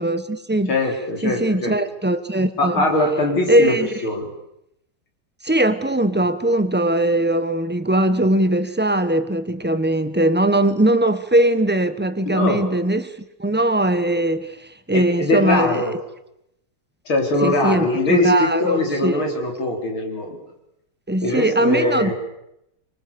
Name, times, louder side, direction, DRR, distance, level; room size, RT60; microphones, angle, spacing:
voice 1, 0.0-0.7 1.2-2.9 3.5-3.9 5.4-15.9 17.4-19.2 21.1-22.1, right 1 dB, 10° right, 10 dB, 0.7 m, -20 dB
voice 2, 0.7-1.7 2.6-3.8 4.0-4.3 12.2-12.6 14.9-16.0 17.1-20.4 21.2-22.1, left 2 dB, 80° left, 2 dB, 4.9 m, -21 dB
25.0 x 24.5 x 7.0 m, 0.82 s
omnidirectional pair, 2.2 m